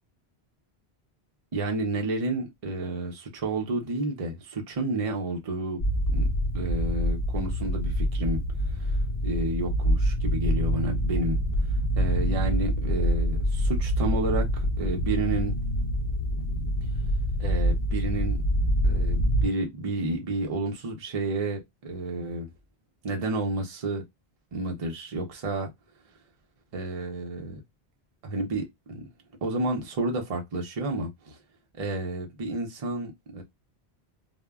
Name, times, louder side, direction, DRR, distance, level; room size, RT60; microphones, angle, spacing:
voice 1, 1.5-5.8 6.1-6.3 6.5-11.4 11.7-15.5 17.4-18.4 18.8-22.5 23.0-24.0 24.5-25.7 26.7-27.6 28.2-29.1 29.4-31.4 31.8-33.4, right 2 dB, 40° right, 0.6 m, -31 dB
sound 1, 5.8-19.5, equal, 50° left, 0.4 m, -26 dB
2.1 x 2.1 x 3.4 m
omnidirectional pair, 1.1 m